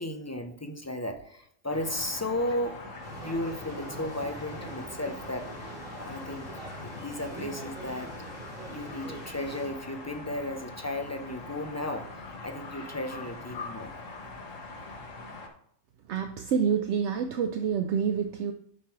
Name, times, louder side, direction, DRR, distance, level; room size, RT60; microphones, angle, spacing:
voice 1, 0.0-2.8 3.2-5.5 6.0-8.1 8.7-12.1 12.4-13.9, left 1 dB, 20° left, 5 dB, 0.4 m, -34 dB
sound 1, 1.7-15.5, left 3 dB, 85° left, 1.5 m, -43 dB
sound 2, 3.0-9.7, right 2 dB, 85° right, 3.0 m, -44 dB
voice 2, 16.1-18.5, right 7 dB, 70° right, 7 dB, 0.8 m, -27 dB
8.1 x 3.1 x 5.8 m, 0.69 s
omnidirectional pair, 1.3 m